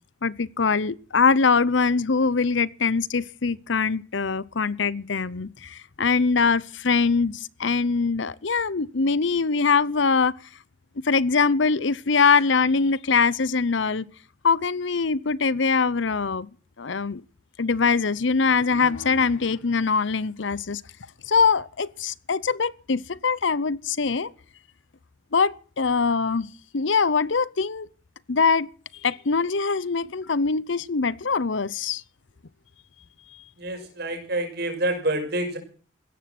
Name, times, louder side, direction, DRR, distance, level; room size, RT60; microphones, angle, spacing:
voice 1, 0.2-10.3 11.0-14.0 14.4-16.5 16.8-17.2 17.6-20.8 21.3-24.3 25.3-26.5 26.7-27.9 28.3-28.7 29.0-32.0, left 5 dB, 70° left, 0.8 m, -23 dB
voice 2, 33.6-35.6, right 1 dB, 55° right, 6.1 m, -27 dB
16.5 x 13.5 x 6.0 m
head